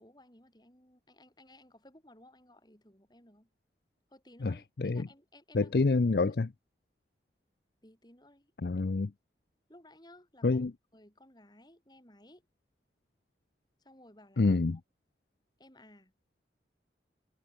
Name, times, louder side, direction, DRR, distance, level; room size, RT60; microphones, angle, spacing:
voice 1, 0.0-3.5 4.1-5.8 7.8-8.7 9.7-10.7 10.9-12.4 13.8-14.6 15.6-16.1, left 1 dB, 25° left, 6.2 m, -58 dB
voice 2, 4.4-5.1 5.5-6.5 8.6-9.1 10.4-10.7 14.4-14.8, left 3 dB, 60° left, 0.5 m, -27 dB
head